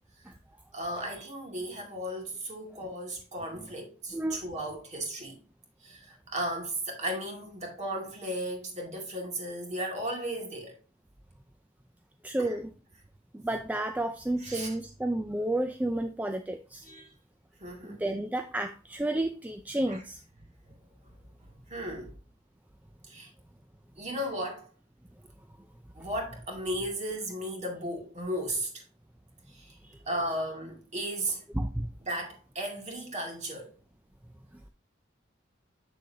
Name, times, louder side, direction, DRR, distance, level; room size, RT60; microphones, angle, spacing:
voice 1, 0.7-5.4 5.8-10.7 12.4-12.6 14.4-14.7 16.8-17.1 17.6-18.0 19.9-20.0 20.7-20.8 21.0-22.1 23.1-23.3 24.0-24.7 26.0-28.8 29.5-29.8 30.1-31.4 32.1-33.7, right 1 dB, 35° right, 2.2 m, -35 dB
voice 2, 4.1-4.5 12.2-12.7 13.3-16.8 17.8-20.2 31.5-31.9, right 1 dB, 10° right, 0.4 m, -31 dB
7.5 x 6.6 x 2.8 m
head